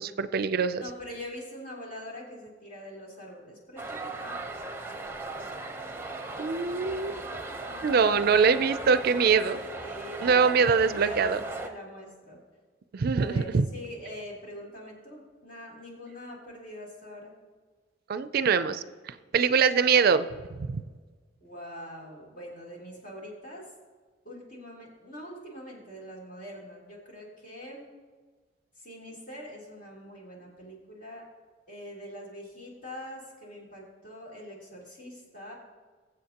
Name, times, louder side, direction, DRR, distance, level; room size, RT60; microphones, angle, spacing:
voice 1, 0.0-0.8 6.4-7.2 7.8-9.6 10.2-11.4 12.9-13.7 18.1-20.8, right 5 dB, 55° right, 13 dB, 0.4 m, -24 dB
voice 2, 0.8-4.3 7.6-8.4 9.7-12.4 13.1-13.5 13.7-17.3 21.4-23.7 24.2-27.8 28.8-31.3 31.7-35.5, left 1 dB, 50° left, -3 dB, 3.3 m, -43 dB
sound 1, 3.8-11.7, right 2 dB, 15° right, 0.8 m, -38 dB
21.5 x 7.6 x 2.9 m, 1.4 s
head